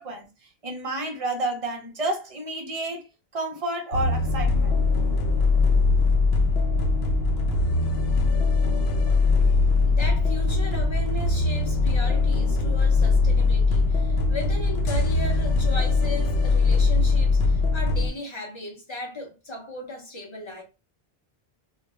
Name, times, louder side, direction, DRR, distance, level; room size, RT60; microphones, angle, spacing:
voice 1, 0.0-3.1 3.3-4.8, right 2 dB, 40° right, 0.6 m, -30 dB
sound 1, 3.9-18.1, left 3 dB, 75° left, 0.8 m, -21 dB
voice 2, 9.8-20.6, left 2 dB, 35° left, 0.5 m, -36 dB
2.4 x 2.1 x 2.9 m
omnidirectional pair, 1.1 m